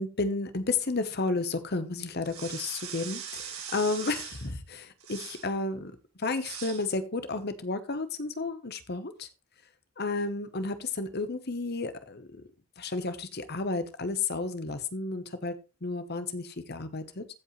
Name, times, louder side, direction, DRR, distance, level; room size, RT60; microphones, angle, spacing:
voice 1, 0.0-5.9 6.2-9.3 10.0-12.4 12.8-17.3, left 3 dB, 45° left, 11 dB, 1.0 m, -32 dB
sound 1, 2.2-4.5 5.0-5.5 6.4-6.9, right 7 dB, 80° right, 3.3 m, -40 dB
15.0 x 5.3 x 3.1 m, 0.29 s
head